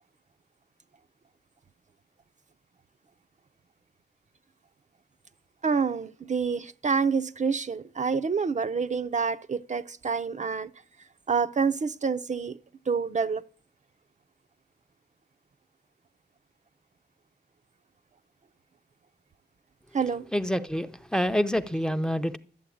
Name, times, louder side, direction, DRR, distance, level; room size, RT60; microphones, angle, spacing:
voice 1, 5.6-10.7 11.3-12.6 12.9-13.4 19.9-20.3, right 5 dB, 45° right, 0.5 m, -27 dB
voice 2, 20.3-22.4, equal, 5° left, 0.5 m, -27 dB
12.5 x 8.4 x 8.4 m
wide cardioid pair, 160°, 18 cm